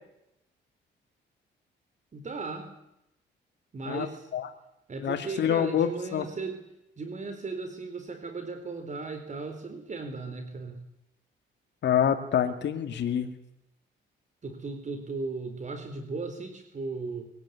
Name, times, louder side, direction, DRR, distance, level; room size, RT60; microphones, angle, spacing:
voice 1, 2.1-2.8 3.7-4.3 4.9-6.6 7.0-10.8 14.4-17.3, right 4 dB, 40° right, 7 dB, 4.3 m, -36 dB
voice 2, 5.0-6.2 11.8-13.3, left 9 dB, 65° left, 6 dB, 2.2 m, -26 dB
23.5 x 17.5 x 9.8 m, 0.85 s
cardioid pair, 90°, 20 cm